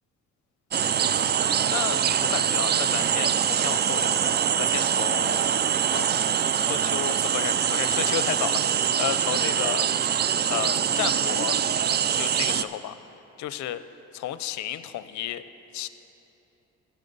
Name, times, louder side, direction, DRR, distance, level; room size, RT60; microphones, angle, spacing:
voice 1, 0.7-4.2 4.6-5.7 5.9-6.2 6.6-9.9 10.5-11.6 12.1-13.0 13.4-13.8 14.1-15.4 15.7-15.9, left 12 dB, 70° left, 13 dB, 0.5 m, -33 dB
sound 1, 0.7-12.6, right 8 dB, 35° right, 0.4 m, -24 dB
14.5 x 6.3 x 5.4 m, 2.9 s
cardioid pair, 90°, 30 cm